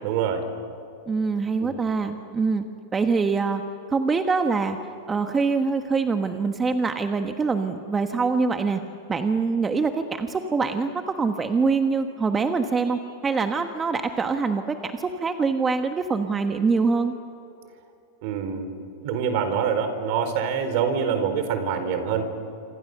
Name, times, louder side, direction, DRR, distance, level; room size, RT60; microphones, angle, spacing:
voice 1, 0.0-0.4 1.6-1.8 18.2-18.7 19.0-22.3, right 7 dB, 55° right, 9 dB, 4.1 m, -25 dB
voice 2, 1.1-2.6 2.9-3.6 3.9-4.8 5.1-8.8 9.1-17.1, right 4 dB, 20° right, 6 dB, 1.3 m, -24 dB
27.0 x 26.5 x 6.8 m, 2.6 s
hypercardioid pair, 115°, 0 cm